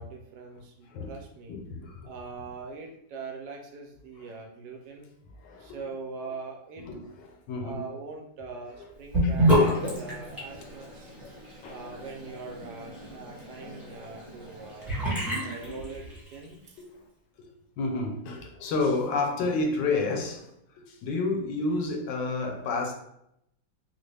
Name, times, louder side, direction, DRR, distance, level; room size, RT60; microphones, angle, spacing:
voice 1, 0.0-1.6 2.0-5.1 5.6-6.9 7.6-11.1 11.7-14.9 15.4-16.8, right 4 dB, 70° right, 1.0 m, -42 dB
voice 2, 1.5-2.0 5.4-5.8 6.8-7.1 7.5-7.8 11.6-11.7 15.4-15.5 17.8-20.5 21.0-22.9, left 3 dB, 75° left, 1.2 m, -29 dB
Sink (filling or washing) / Bathtub (filling or washing), 9.1-16.4, equal, ahead, 0.9 m, -29 dB
3.8 x 2.1 x 3.2 m
omnidirectional pair, 2.0 m